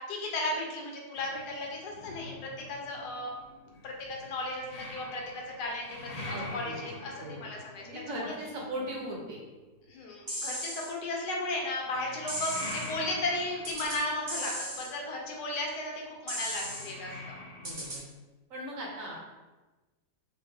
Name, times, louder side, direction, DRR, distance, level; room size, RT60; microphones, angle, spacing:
voice 1, 0.0-3.3 3.8-4.6 4.9-5.9 6.5-7.1 7.4-8.3 9.9-15.9 16.2-17.4, left 2 dB, 90° left, -1 dB, 1.3 m, -35 dB
sound 1, 1.2-9.6 11.8-17.9, left 2 dB, 60° left, 0.5 m, -45 dB
voice 2, 6.3-6.8 7.2-7.5 7.8-9.4 17.5-18.0 18.5-19.2, right 1 dB, 65° right, -2 dB, 1.1 m, -38 dB
sound 2, 10.3-10.9 12.3-12.9 13.6-14.0 14.3-14.9 16.3-16.9 17.6-18.0, equal, 40° right, 0.8 m, -36 dB
3.4 x 2.1 x 3.5 m, 1.2 s
omnidirectional pair, 1.7 m